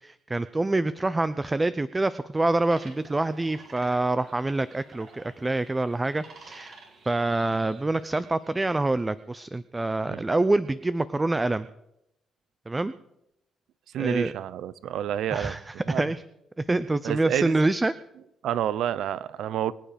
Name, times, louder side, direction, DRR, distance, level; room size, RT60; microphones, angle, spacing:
voice 1, 0.0-6.7 7.1-11.7 12.7-12.9 14.0-14.3 15.3-16.2 16.6-17.9, right 2 dB, 20° right, 14 dB, 0.6 m, -26 dB
sound 1, 2.7-8.8, right 3 dB, 55° right, 3.9 m, -52 dB
voice 2, 13.9-15.6 15.9-16.0 17.0-17.6 18.4-19.7, right 10 dB, 80° right, 18 dB, 0.6 m, -29 dB
23.5 x 9.0 x 5.1 m, 0.83 s
cardioid pair, 90°, 0 cm